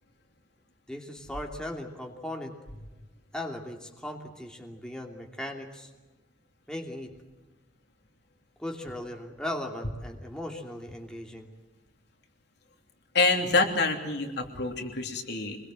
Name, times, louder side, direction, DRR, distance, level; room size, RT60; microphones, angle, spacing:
voice 1, 0.9-2.5 3.3-5.9 6.7-7.1 8.6-11.5, left 1 dB, 5° left, 1 dB, 2.7 m, -38 dB
voice 2, 13.1-15.6, left 3 dB, 65° left, 3 dB, 3.2 m, -26 dB
25.5 x 21.5 x 7.7 m, 1.2 s
head